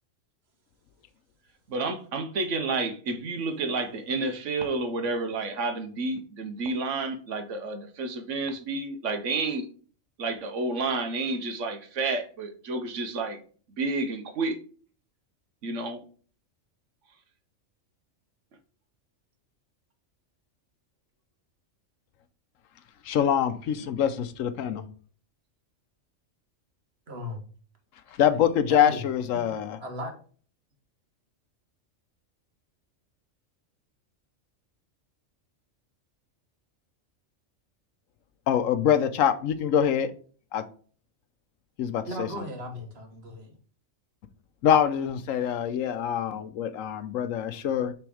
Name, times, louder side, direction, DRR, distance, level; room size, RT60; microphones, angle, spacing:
voice 1, 1.7-9.7 10.2-13.4 13.8-14.6 15.6-16.0, right 3 dB, 70° right, 1.2 m, -30 dB
voice 2, 23.0-24.8 28.2-29.8 38.5-40.1 40.5-40.6 41.8-42.3 44.6-47.9, left 9 dB, 80° left, 1.0 m, -24 dB
voice 3, 27.1-27.4 28.7-29.0 29.3-30.1 42.1-43.5, equal, 50° right, 1.6 m, -37 dB
6.1 x 3.5 x 4.8 m
omnidirectional pair, 1.4 m